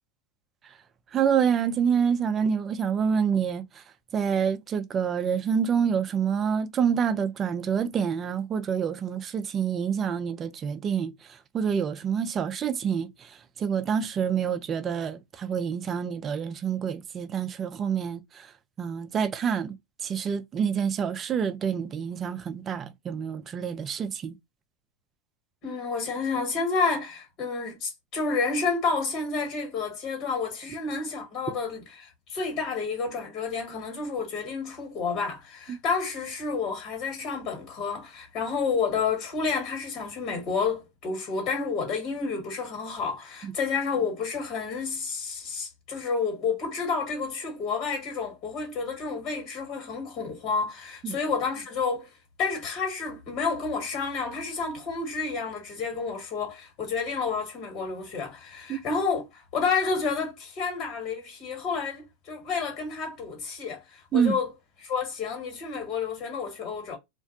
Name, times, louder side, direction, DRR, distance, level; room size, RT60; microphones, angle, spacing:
voice 1, 1.1-3.8 4.1-18.5 18.8-19.8 20.0-24.4 35.7-35.8 43.4-43.5 51.0-51.2 58.7-58.8 64.1-64.3, right 7 dB, 30° right, 0.4 m, -27 dB
voice 2, 25.6-52.1 52.4-64.5 64.8-67.0, left 5 dB, 50° left, 1.6 m, -30 dB
2.5 x 2.1 x 2.6 m
hypercardioid pair, 100°, 0 cm